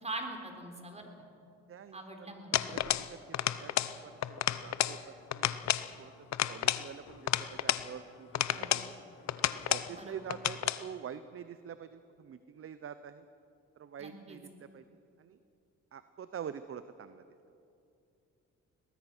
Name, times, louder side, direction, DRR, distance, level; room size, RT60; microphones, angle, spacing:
voice 1, 0.0-1.1 1.9-2.6 8.5-8.9 9.9-10.2 14.0-14.4, right 2 dB, 20° right, 3 dB, 3.7 m, -43 dB
voice 2, 1.7-3.2 3.6-3.7 4.0-5.6 6.0-6.1 6.5-8.9 9.5-13.2 13.8-14.8 15.2-15.4 15.9-17.2, right 8 dB, 45° right, 12 dB, 0.8 m, -46 dB
sound 1, 2.5-3.1 3.3-4.0 4.2-5.0 5.3-5.9 6.3-7.9 8.3-8.9 9.3-9.9 10.3-10.8, left 12 dB, 65° left, 0.8 m, -31 dB
22.0 x 19.0 x 6.1 m, 2.6 s
cardioid pair, 90°, 30 cm